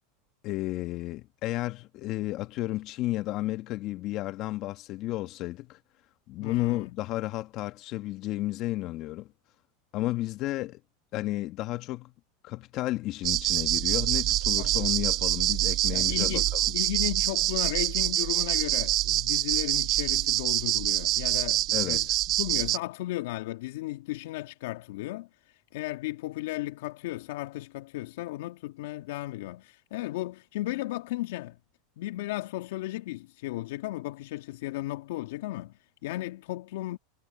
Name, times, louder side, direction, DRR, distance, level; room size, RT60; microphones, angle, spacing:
voice 1, 0.4-5.8 6.3-9.3 9.9-10.8 11.1-12.1 12.4-16.7 21.7-22.1, left 17 dB, 50° left, 1.4 m, -32 dB
voice 2, 6.4-6.9 14.6-14.9 15.9-22.1 22.4-31.6 32.0-37.0, left 17 dB, 70° left, 1.7 m, -35 dB
sound 1, 13.2-22.8, right 16 dB, 50° right, 0.8 m, -26 dB
hypercardioid pair, 105°, 0 cm